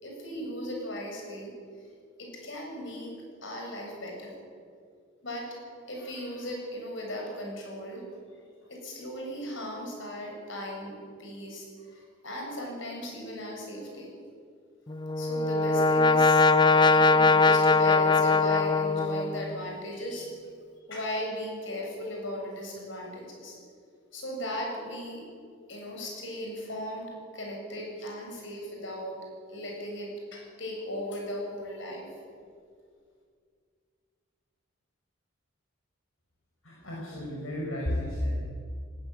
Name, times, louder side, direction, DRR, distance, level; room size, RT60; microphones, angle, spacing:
voice 1, 0.0-1.5 2.2-3.1 3.4-4.3 5.2-5.5 5.9-8.0 8.7-14.2 15.2-20.3 20.9-23.5 24.1-25.2 25.7-29.2 29.5-32.1, equal, 60° left, 0 dB, 7.8 m, -37 dB
Brass instrument, 14.9-19.7, left 3 dB, 20° left, 0.6 m, -22 dB
voice 2, 36.6-38.3, left 1 dB, 75° left, -3 dB, 5.2 m, -32 dB
18.5 x 18.5 x 9.7 m, 2.2 s
head